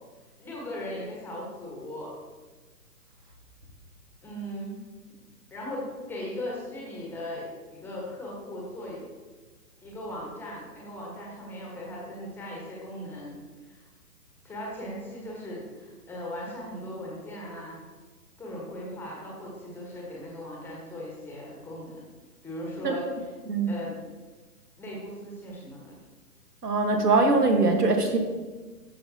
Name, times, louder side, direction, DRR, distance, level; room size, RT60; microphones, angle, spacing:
voice 1, 0.4-2.1 4.2-4.8 5.5-9.0 9.8-13.3 13.6-13.9 14.4-17.8 18.4-22.1 22.4-23.1 23.7-24.0 24.8-26.0, left 1 dB, 5° left, -4 dB, 1.3 m, -38 dB
voice 2, 26.6-28.2, right 3 dB, 75° right, 5 dB, 1.5 m, -22 dB
13.0 x 5.3 x 2.8 m, 1.3 s
figure-of-eight pair, 130°, 48 cm